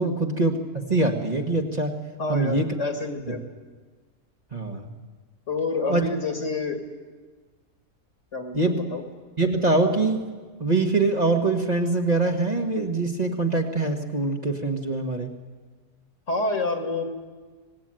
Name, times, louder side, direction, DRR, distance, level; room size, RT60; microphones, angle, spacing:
voice 1, 0.0-2.0 2.3-2.7 3.3-3.4 4.5-4.9 5.9-6.0 8.5-8.8 9.4-10.2 10.6-15.3, right 3 dB, 25° right, 2 dB, 1.6 m, -24 dB
voice 2, 2.2-3.5 5.5-6.8 8.3-9.0 16.3-17.0, left 3 dB, 50° left, 5 dB, 2.7 m, -28 dB
25.5 x 19.5 x 9.0 m, 1.4 s
omnidirectional pair, 1.6 m